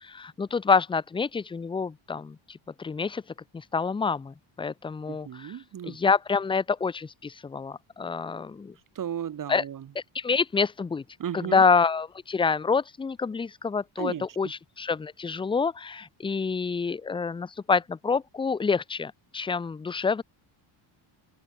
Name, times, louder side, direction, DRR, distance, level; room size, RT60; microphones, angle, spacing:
voice 1, 0.0-3.2 3.5-5.6 5.8-8.7 9.5-9.6 10.1-11.0 11.3-20.2, left 5 dB, 10° left, 0.4 m, -27 dB
voice 2, 5.1-6.0 9.0-9.9 11.2-11.6 14.0-14.3, right 9 dB, 40° right, 7.2 m, -34 dB
cardioid pair, 175°, 49 cm